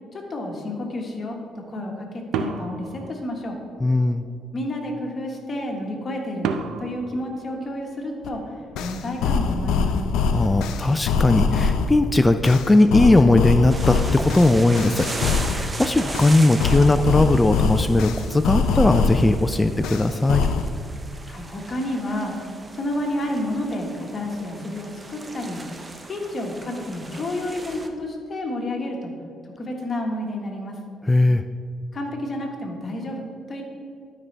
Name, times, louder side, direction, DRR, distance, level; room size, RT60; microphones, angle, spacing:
voice 1, 0.1-3.6 4.5-6.5 6.8-8.5 8.8-10.0 21.2-22.3 22.7-25.6 26.1-29.1 29.6-30.8 31.9-33.6, left 1 dB, 40° left, 1 dB, 1.5 m, -30 dB
sound 1, 2.3-3.8 6.4-8.3, right 5 dB, 90° right, 0.5 m, -31 dB
voice 2, 3.8-4.2 10.3-15.1 15.5-20.4 31.0-31.4, left 2 dB, 15° left, 8 dB, 0.3 m, -18 dB
sound 2, 8.2-8.3 8.8-12.0 12.4-15.7 16.1-19.4 19.8-20.7, left 5 dB, 90° left, 0.5 m, -23 dB
sound 3, 13.7-27.9, right 2 dB, 25° right, 0.7 m, -37 dB
12.5 x 5.3 x 3.4 m, 2.2 s
cardioid pair, 90°, 0 cm